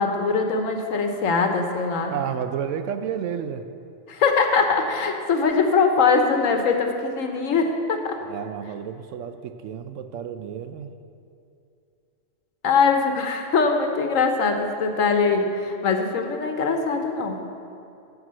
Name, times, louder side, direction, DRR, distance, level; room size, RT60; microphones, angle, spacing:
voice 1, 0.0-2.1 4.1-8.2 12.6-17.4, left 4 dB, 80° left, 4 dB, 1.4 m, -22 dB
voice 2, 2.1-3.7 8.2-10.9, right 8 dB, 75° right, 9 dB, 0.9 m, -31 dB
13.5 x 4.8 x 7.6 m, 2.6 s
omnidirectional pair, 1.3 m